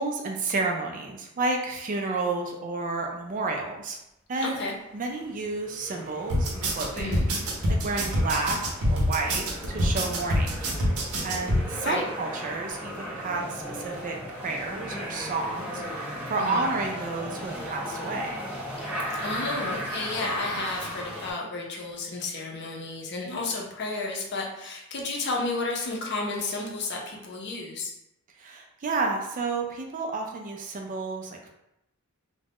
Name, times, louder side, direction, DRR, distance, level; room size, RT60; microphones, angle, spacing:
voice 1, 0.0-4.0 4.3-4.6 4.9-7.2 7.8-8.6 8.8-10.5 11.2-18.4 28.4-31.5, right 3 dB, 35° right, 2 dB, 0.3 m, -31 dB
voice 2, 4.4-4.7 6.9-7.3 11.8-12.0 16.4-16.7 19.2-27.9, left 3 dB, 50° left, -1 dB, 0.6 m, -32 dB
sound 1, 5.2-21.3, equal, 5° right, 0.7 m, -36 dB
sound 2, 6.3-11.6, equal, 80° right, 0.7 m, -25 dB
2.4 x 2.1 x 3.4 m, 0.84 s
head